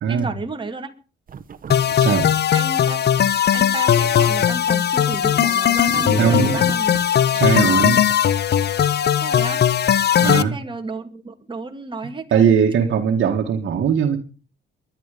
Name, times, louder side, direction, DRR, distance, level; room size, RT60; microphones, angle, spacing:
voice 1, 0.1-0.9 2.5-7.0 9.2-9.6 10.2-12.6, right 3 dB, 25° right, 2.5 m, -32 dB
sound 1, 1.3-1.9 2.2-3.2 3.8-5.4 5.7-7.1 7.7-8.1, right 7 dB, 45° right, 1.4 m, -35 dB
sound 2, 1.7-10.4, left 9 dB, 55° left, 1.0 m, -18 dB
voice 2, 2.0-2.3 6.2-6.6 7.3-8.0 10.2-10.6 12.3-14.2, right 7 dB, 65° right, 1.9 m, -19 dB
22.0 x 11.0 x 5.2 m
cardioid pair, 90°, 20 cm